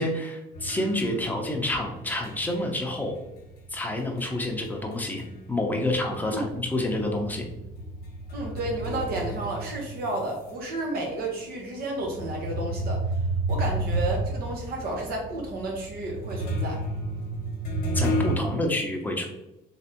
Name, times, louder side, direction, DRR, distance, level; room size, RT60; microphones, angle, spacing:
voice 1, 0.0-3.1 3.7-5.2 5.5-7.5 17.9-19.3, left 1 dB, 10° left, 1 dB, 0.7 m, -28 dB
sound 1, 0.5-5.5 5.8-10.5 11.1-11.2 12.0-18.4, right 1 dB, 65° left, 1.0 m, -31 dB
voice 2, 8.3-13.0 13.5-16.8, right 2 dB, 65° right, -1 dB, 1.0 m, -32 dB
3.3 x 3.2 x 2.9 m, 0.89 s
cardioid pair, 110°, 17 cm